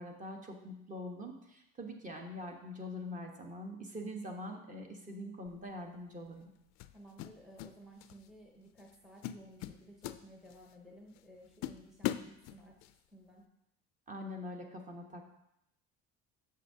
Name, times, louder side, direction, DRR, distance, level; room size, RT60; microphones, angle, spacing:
voice 1, 0.0-6.5 14.1-15.3, left 1 dB, 25° right, 2 dB, 1.1 m, -44 dB
sound 1, 5.5-5.7 6.8-7.7 8.0-8.3 8.8-8.9 9.2-10.7 11.2-11.3 11.6-12.9, left 13 dB, 60° left, 0.4 m, -40 dB
voice 2, 6.9-13.5, right 1 dB, ahead, -1 dB, 0.8 m, -56 dB
8.2 x 6.5 x 2.8 m, 0.81 s
cardioid pair, 120°, 30 cm